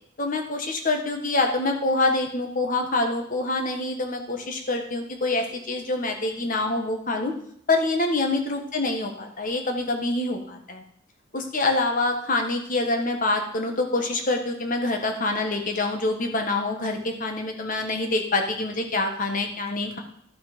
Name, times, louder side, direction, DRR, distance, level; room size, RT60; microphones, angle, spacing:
voice 1, 0.2-7.3 7.7-10.8 11.3-20.0, left 2 dB, 45° left, 4 dB, 1.4 m, -26 dB
11.5 x 5.9 x 5.2 m, 0.66 s
head